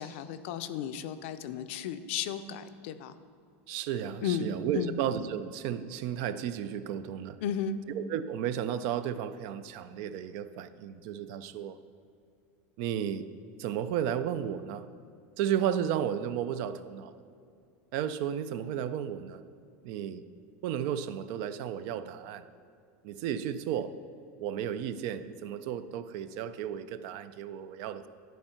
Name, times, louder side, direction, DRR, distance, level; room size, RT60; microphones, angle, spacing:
voice 1, 0.0-3.1 4.2-5.0 7.4-7.8, left 8 dB, 65° left, 11 dB, 0.5 m, -34 dB
voice 2, 3.7-7.4 8.0-11.8 12.8-13.3 13.6-14.9 15.4-17.1 17.9-19.4 19.8-20.3 20.6-22.5 23.0-24.0 24.4-28.1, right 9 dB, 55° right, 13 dB, 0.4 m, -33 dB
11.5 x 4.5 x 5.7 m, 2.4 s
supercardioid pair, 155°, 7 cm